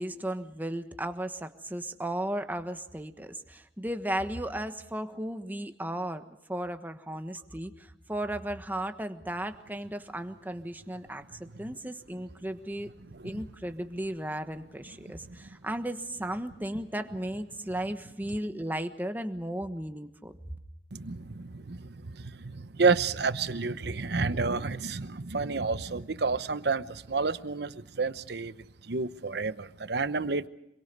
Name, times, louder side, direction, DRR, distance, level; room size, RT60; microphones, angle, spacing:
voice 1, 0.0-6.2 6.5-12.9 13.2-20.3, right 1 dB, 10° right, 7 dB, 1.3 m, -35 dB
voice 2, 13.1-13.4 15.0-15.5 20.9-30.5, right 4 dB, 65° right, 14 dB, 0.9 m, -30 dB
26.5 x 23.0 x 5.4 m, 0.86 s
head